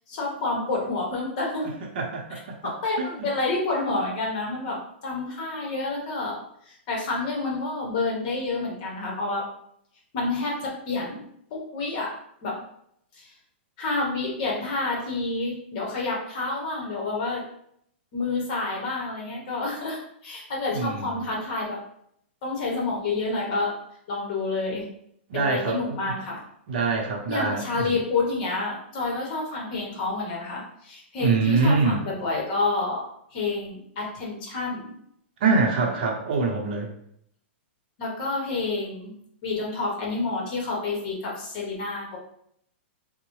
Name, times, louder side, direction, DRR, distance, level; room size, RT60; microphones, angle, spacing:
voice 1, 0.1-1.7 2.6-4.8 5.0-6.4 6.6-9.4 10.1-11.2 11.5-12.1 12.4-12.6 13.1-13.3 13.8-17.4 18.1-21.8 22.4-23.7 24.1-24.8 25.3-26.4 27.3-33.0 33.3-35.0 35.8-35.9 38.0-39.1 39.4-42.2, left 3 dB, 40° left, -2 dB, 1.0 m, -29 dB
voice 2, 1.6-2.6 3.0-3.3 20.7-21.3 25.3-26.1 26.7-28.0 31.2-32.0 35.4-36.9, right 4 dB, 50° right, 1 dB, 0.7 m, -25 dB
3.8 x 2.1 x 3.1 m, 0.71 s
hypercardioid pair, 165°, 6 cm